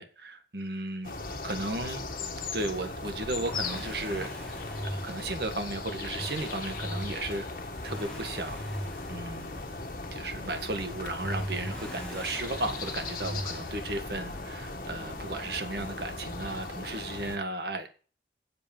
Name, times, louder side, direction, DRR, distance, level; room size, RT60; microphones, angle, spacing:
voice 1, 0.0-2.0 2.5-4.3 4.8-7.5 7.8-8.6 9.1-9.6 10.1-17.9, right 2 dB, 65° right, 7 dB, 1.8 m, -35 dB
sound 1, 1.0-17.4, left 3 dB, 50° left, 1.6 m, -38 dB
Accelerating revving vroom, 3.1-15.0 16.3-16.4, equal, 5° left, 2.3 m, -41 dB
8.6 x 7.8 x 7.3 m, 0.38 s
head